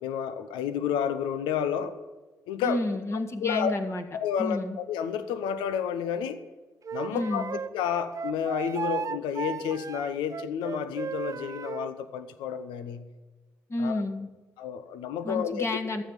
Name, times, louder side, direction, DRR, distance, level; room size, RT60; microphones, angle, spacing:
voice 1, 0.0-2.0 2.5-2.8 3.4-3.7 4.1-6.4 6.9-7.4 7.7-13.1 13.8-14.0 14.6-15.8, left 8 dB, 75° left, 11 dB, 0.8 m, -30 dB
voice 2, 2.6-4.0 4.4-4.8 7.1-7.6 13.7-14.3 15.2-16.0, left 2 dB, 30° left, 4 dB, 1.8 m, -30 dB
Wind instrument woodwind instrument, 6.8-11.9, right 6 dB, 40° right, 0.6 m, -35 dB
14.0 x 6.4 x 9.0 m, 1.3 s
hypercardioid pair, 40°, 8 cm